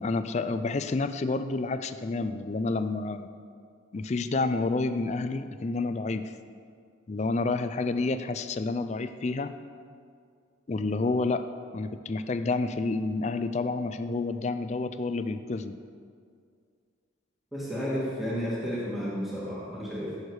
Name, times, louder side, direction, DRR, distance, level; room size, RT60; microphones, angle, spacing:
voice 1, 0.0-3.3 3.9-6.3 7.1-9.5 10.7-11.5 11.7-15.8, left 3 dB, 35° left, 11 dB, 0.4 m, -29 dB
voice 2, 17.5-20.2, equal, ahead, -7 dB, 1.8 m, -32 dB
15.5 x 6.5 x 4.8 m, 2.3 s
head